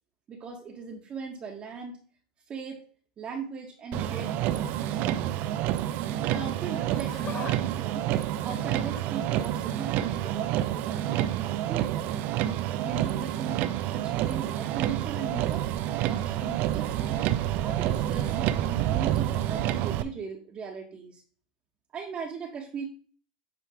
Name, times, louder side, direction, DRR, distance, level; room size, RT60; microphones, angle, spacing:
voice 1, 0.3-2.0 2.5-2.9 3.2-5.4 6.2-12.0 12.8-13.6 13.9-15.7 16.0-17.2 17.6-21.2 21.9-22.8, right 5 dB, 35° right, 0 dB, 1.5 m, -39 dB
Motor vehicle (road), 3.9-20.0, right 12 dB, 50° right, 0.6 m, -28 dB
Laughter, 6.7-7.6 7.9-9.2 10.1-10.5 11.8-12.0 12.9-13.0, left 5 dB, 35° left, 2.3 m, -43 dB
8.5 x 3.1 x 5.1 m, 0.44 s
hypercardioid pair, 105°, 4 cm